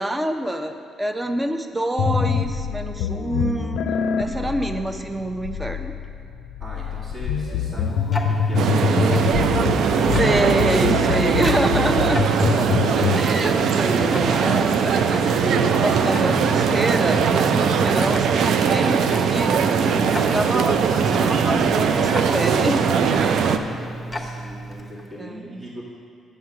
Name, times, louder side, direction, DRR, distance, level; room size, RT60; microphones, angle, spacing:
voice 1, 0.0-3.8 4.2-5.9 10.1-12.7 12.9-22.8 25.2-25.6, right 1 dB, 15° right, 7 dB, 0.6 m, -27 dB
sound 1, 2.0-13.3, left 6 dB, 80° left, 0.4 m, -25 dB
voice 2, 4.3-4.7 6.6-10.3 23.0-25.8, equal, 45° right, -9 dB, 1.7 m, -41 dB
Tick-tock, 6.8-25.1, right 1 dB, 15° left, 0.9 m, -34 dB
sound 2, 8.5-23.6, right 6 dB, 75° right, 0.4 m, -20 dB
7.9 x 6.5 x 4.8 m, 2.3 s
cardioid pair, 90°, 0 cm